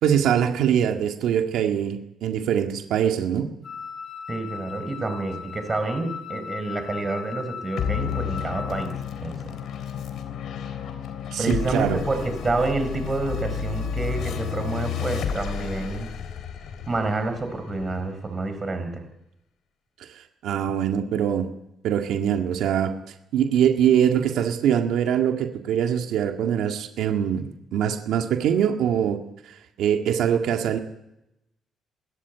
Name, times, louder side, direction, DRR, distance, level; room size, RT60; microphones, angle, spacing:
voice 1, 0.0-3.5 11.3-12.0 20.4-21.5 21.8-22.9 23.3-29.2 29.8-30.8, right 9 dB, 85° right, 4 dB, 1.9 m, -23 dB
Wind instrument woodwind instrument, 3.6-9.0, left 7 dB, 45° left, 6.3 m, -37 dB
voice 2, 4.3-8.9 9.2-9.6 11.4-16.1 16.9-19.0, right 3 dB, 30° right, 8 dB, 4.5 m, -28 dB
sound 1, 7.8-18.6, left 8 dB, 70° left, 3.5 m, -31 dB
28.5 x 13.5 x 8.2 m, 0.88 s
cardioid pair, 90°, 0 cm